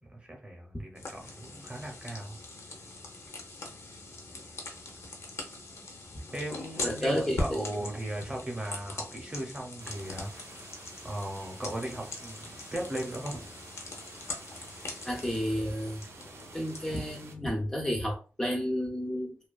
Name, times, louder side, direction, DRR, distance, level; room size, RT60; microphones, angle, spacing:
voice 1, 0.0-2.4 6.3-10.7 11.0-13.4, right 1 dB, 25° right, 1 dB, 0.6 m, -37 dB
sound 1, 1.0-17.3, left 2 dB, 85° left, 0.5 m, -41 dB
voice 2, 6.8-7.6 15.0-16.0 16.5-19.4, equal, 10° left, 0 dB, 0.3 m, -31 dB
sound 2, 9.8-17.4, right 4 dB, 75° right, 0.4 m, -51 dB
2.5 x 2.2 x 2.2 m, 0.35 s
wide cardioid pair, 155°, 5 cm